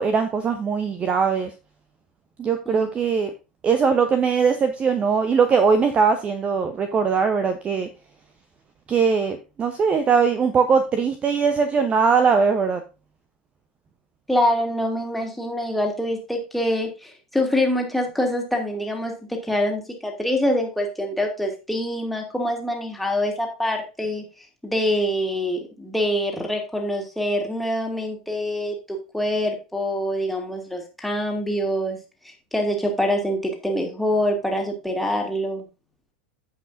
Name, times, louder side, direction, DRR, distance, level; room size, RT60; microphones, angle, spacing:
voice 1, 0.0-1.5 2.4-3.3 3.6-7.9 8.9-12.8, right 5 dB, 25° right, 9 dB, 0.8 m, -20 dB
voice 2, 14.3-32.0 32.2-35.7, left 1 dB, ahead, 1 dB, 2.4 m, -25 dB
15.5 x 5.5 x 2.6 m, 0.29 s
figure-of-eight pair, 90°, 5 cm